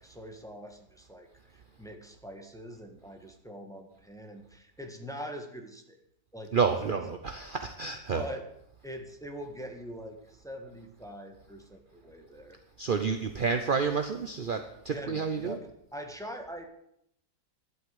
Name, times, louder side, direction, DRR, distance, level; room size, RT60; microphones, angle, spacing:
voice 1, 0.0-6.0 6.3-7.0 8.1-8.5 8.8-12.6 14.9-15.7 15.9-16.6, equal, ahead, 4 dB, 1.4 m, -43 dB
voice 2, 6.5-8.3 12.8-15.6, right 5 dB, 50° right, 6 dB, 0.6 m, -29 dB
11.5 x 8.3 x 7.9 m, 0.75 s
omnidirectional pair, 1.9 m